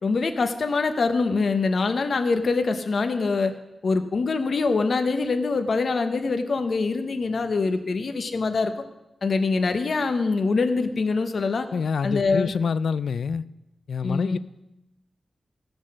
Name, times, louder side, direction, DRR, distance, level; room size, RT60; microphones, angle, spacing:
voice 1, 0.0-3.5 3.8-8.7 9.2-11.7 12.0-12.5 14.0-14.4, left 4 dB, 55° left, 0.8 m, -24 dB
voice 2, 11.7-13.4 13.9-14.4, left 5 dB, 80° left, 0.4 m, -26 dB
16.0 x 6.2 x 6.3 m
wide cardioid pair, 145°, 0 cm